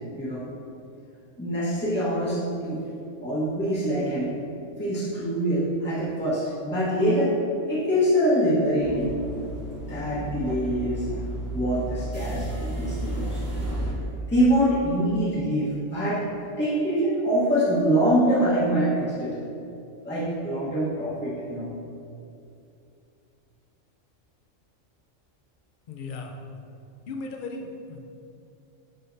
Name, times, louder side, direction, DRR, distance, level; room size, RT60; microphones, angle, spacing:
voice 1, 1.4-2.8 3.2-4.3 4.8-7.3 7.7-9.1 9.9-11.0 11.5-13.4 14.3-16.2 16.6-19.3 20.0-21.7, equal, 10° left, -10 dB, 1.3 m, -24 dB
sound 1, 8.8-13.9, right 1 dB, 15° right, 0.8 m, -32 dB
voice 2, 25.9-26.4 27.1-28.0, left 3 dB, 50° left, 3 dB, 0.7 m, -36 dB
10.5 x 3.8 x 2.7 m, 2.6 s
omnidirectional pair, 1.3 m